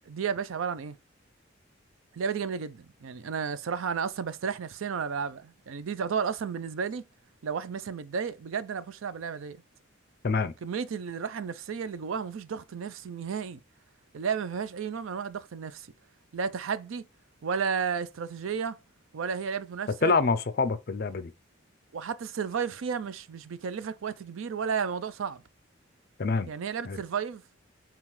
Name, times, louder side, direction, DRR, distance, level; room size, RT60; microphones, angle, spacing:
voice 1, 0.1-1.0 2.1-7.0 7.4-9.6 10.6-13.6 14.1-15.9 16.3-17.1 17.4-18.8 19.1-20.1 21.9-25.4 26.5-27.7, right 6 dB, 75° right, 0.4 m, -33 dB
voice 2, 20.0-21.3 26.2-26.5 26.9-27.0, left 4 dB, 45° left, 0.5 m, -26 dB
7.0 x 2.4 x 3.1 m
head